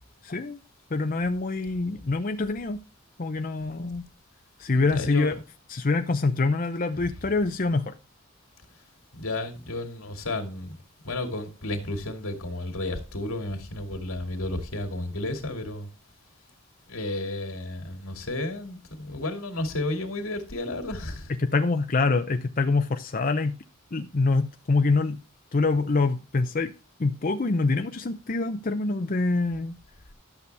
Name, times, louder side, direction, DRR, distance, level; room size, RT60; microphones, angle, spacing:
voice 1, 0.2-0.6 0.9-2.8 3.2-4.1 4.6-5.3 5.7-7.9 21.4-23.6 23.9-25.2 25.5-26.7 27.0-29.8, left 3 dB, 40° left, 0.6 m, -25 dB
voice 2, 4.7-5.3 9.1-10.8 11.0-15.9 16.9-21.3, left 2 dB, 85° left, 2.4 m, -32 dB
12.0 x 7.0 x 3.4 m
head